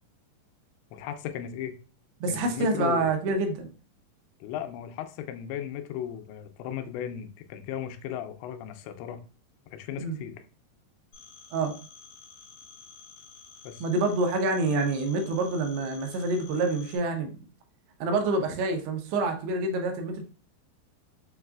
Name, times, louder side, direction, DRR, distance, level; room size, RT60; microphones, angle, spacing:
voice 1, 0.9-1.8 2.3-3.1 4.4-9.2 9.7-10.3 13.6-13.8, left 10 dB, 90° left, 7 dB, 2.8 m, -36 dB
voice 2, 2.2-3.7 10.0-10.2 11.5-11.7 13.8-17.3 18.0-20.2, right 2 dB, 85° right, 4 dB, 2.7 m, -27 dB
Telephone, 11.1-17.0, left 5 dB, 70° left, 2.2 m, -51 dB
6.8 x 2.3 x 2.3 m, 0.37 s
omnidirectional pair, 4.9 m